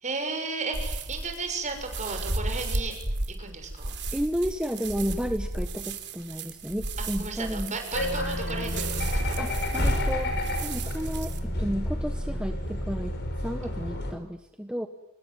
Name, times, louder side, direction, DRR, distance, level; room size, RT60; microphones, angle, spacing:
voice 1, 0.0-2.9 3.4-3.9 7.0-9.4, right 3 dB, 35° right, 5 dB, 6.5 m, -34 dB
sound 1, 0.7-11.4, right 2 dB, 50° right, 3.2 m, -34 dB
voice 2, 4.1-7.8 9.4-10.4 10.6-13.1 13.4-14.9, equal, 5° right, 6 dB, 1.2 m, -32 dB
sound 2, 7.9-14.1, left 1 dB, 50° left, 5.5 m, -30 dB
26.0 x 21.5 x 9.5 m, 0.88 s
head